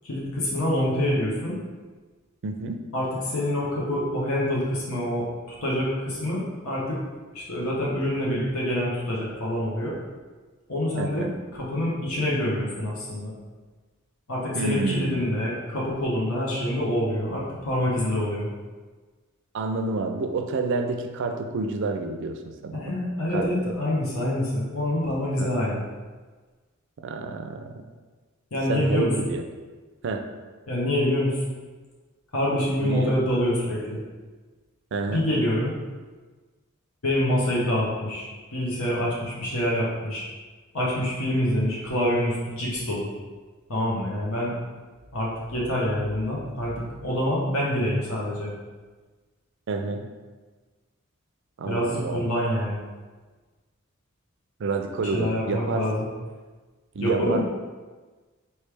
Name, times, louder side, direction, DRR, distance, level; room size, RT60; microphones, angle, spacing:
voice 1, 0.0-1.6 2.9-5.3 5.6-7.0 7.3-10.0 10.7-11.3 11.5-13.3 14.3-18.5 22.7-25.8 28.5-29.1 30.7-31.4 32.3-34.0 35.1-35.8 37.0-40.3 40.7-43.1 43.7-44.5 45.1-48.5 51.7-52.8 55.0-56.0 57.0-57.4, left 1 dB, 85° left, -5 dB, 1.0 m, -26 dB
voice 2, 2.4-2.8 11.0-11.3 14.5-15.3 19.5-22.9 23.3-23.5 25.4-25.5 27.0-27.7 28.7-29.4 30.0-30.3 32.8-33.1 34.9-35.2 49.7-50.1 51.6-52.3 54.6-55.9 56.9-57.4, right 3 dB, 60° right, 5 dB, 0.4 m, -29 dB
4.4 x 3.2 x 3.4 m, 1.3 s
head